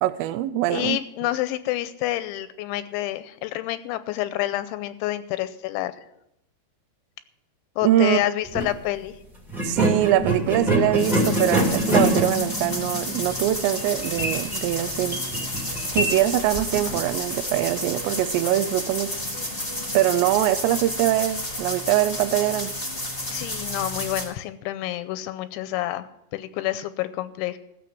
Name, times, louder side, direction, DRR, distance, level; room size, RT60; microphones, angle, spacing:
voice 1, 0.0-1.0 7.8-8.2 9.6-15.2 15.9-19.1 19.9-22.7, right 13 dB, 85° right, 13 dB, 2.7 m, -23 dB
voice 2, 0.7-5.9 7.8-9.2 23.3-27.6, left 14 dB, 90° left, 13 dB, 3.0 m, -28 dB
sound 1, 8.4-8.7 9.5-17.0, equal, ahead, 0.6 m, -26 dB
sound 2, 11.0-24.2, left 1 dB, 20° left, 1.4 m, -31 dB
14.5 x 7.4 x 6.1 m, 0.80 s
omnidirectional pair, 5.3 m